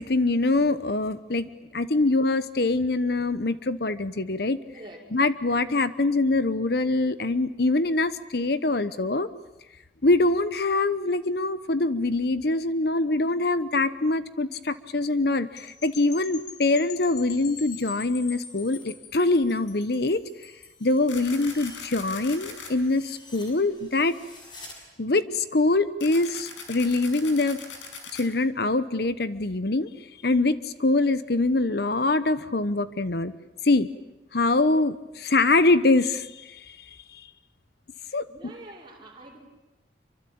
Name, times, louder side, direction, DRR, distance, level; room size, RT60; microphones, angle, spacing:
voice 1, 0.0-4.6 5.1-9.3 10.0-20.5 20.8-24.2 25.0-27.6 28.1-29.9 30.2-33.3 33.6-33.9 34.3-37.3 38.1-38.3, left 2 dB, 55° left, 14 dB, 1.0 m, -24 dB
voice 2, 4.7-5.1 38.3-39.4, right 1 dB, 25° right, -1 dB, 5.5 m, -45 dB
sound 1, 15.6-20.9, left 7 dB, 40° left, 2.4 m, -44 dB
sound 2, 16.5-18.9 19.3-24.8, left 2 dB, 25° left, 6.3 m, -52 dB
sound 3, 21.1-22.7 26.0-28.2, left 5 dB, 85° left, 5.5 m, -40 dB
27.5 x 24.5 x 8.7 m, 1.0 s
head